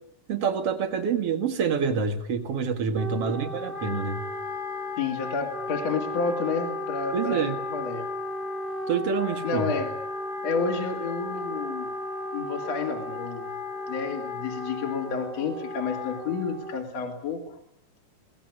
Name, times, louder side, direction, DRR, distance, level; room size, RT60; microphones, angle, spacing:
voice 1, 0.3-4.2 7.1-7.6 8.9-9.7, right 6 dB, 50° right, 6 dB, 2.0 m, -27 dB
Wind instrument woodwind instrument, 2.9-17.0, left 1 dB, 30° right, 1.0 m, -34 dB
voice 2, 5.0-8.1 9.4-9.9 10.4-11.9 12.3-13.5 13.9-17.6, left 4 dB, 45° left, 3 dB, 3.1 m, -30 dB
23.5 x 18.0 x 9.5 m, 0.74 s
omnidirectional pair, 4.7 m